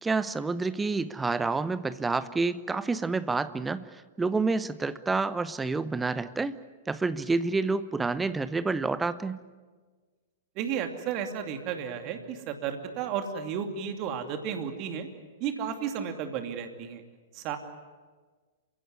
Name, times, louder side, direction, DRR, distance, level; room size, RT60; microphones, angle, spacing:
voice 1, 0.0-6.6 6.9-9.4, right 3 dB, 10° right, 15 dB, 0.9 m, -28 dB
voice 2, 10.6-15.1 15.4-17.0 17.4-17.6, right 8 dB, 40° right, 6 dB, 2.7 m, -33 dB
28.5 x 16.5 x 9.6 m, 1.4 s
figure-of-eight pair, 105°, 0 cm